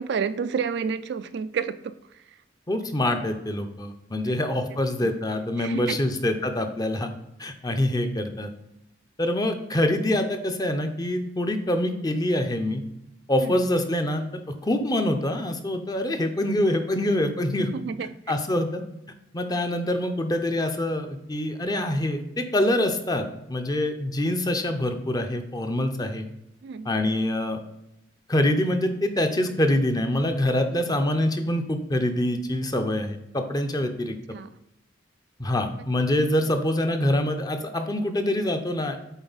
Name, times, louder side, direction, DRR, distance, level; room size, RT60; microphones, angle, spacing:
voice 1, 0.0-1.9 4.2-4.6 5.0-5.1 5.6-6.0 13.4-13.6 17.7-18.1 26.6-26.9 34.3-34.5, right 6 dB, 65° right, 12 dB, 0.4 m, -30 dB
voice 2, 2.7-7.1 7.4-8.5 9.2-12.8 13.3-17.7 18.3-18.8 19.3-26.3 26.8-27.6 28.3-34.1 35.4-39.0, left 1 dB, 20° left, 6 dB, 0.6 m, -25 dB
8.1 x 4.2 x 4.0 m, 0.84 s
head